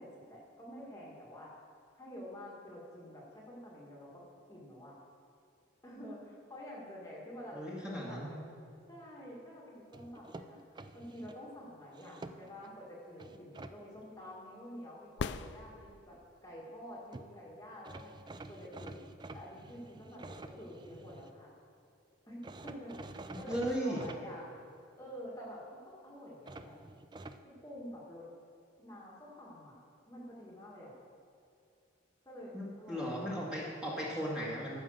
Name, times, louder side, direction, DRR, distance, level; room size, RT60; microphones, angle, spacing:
voice 1, 0.0-1.6 1.9-4.2 4.5-4.9 5.8-8.4 8.9-10.6 10.9-16.2 16.4-18.1 18.5-19.0 19.3-21.5 22.3-24.5 25.0-26.7 27.6-28.3 28.8-29.8 30.1-30.9 32.2-32.5 32.8-33.1, equal, 15° left, -5 dB, 1.8 m, -48 dB
voice 2, 7.5-8.3 23.4-24.0 32.5-34.8, equal, 5° right, -6 dB, 1.9 m, -36 dB
sound 1, 9.9-11.4 11.9-12.7 13.2-13.7 16.8-16.9 17.1-17.3 17.8-21.3 22.4-24.2 26.5-27.4, right 2 dB, 20° right, 0.3 m, -48 dB
sound 2, 15.2-16.3 20.2-20.3, left 5 dB, 60° left, 0.4 m, -39 dB
14.0 x 5.6 x 6.5 m, 2.6 s
head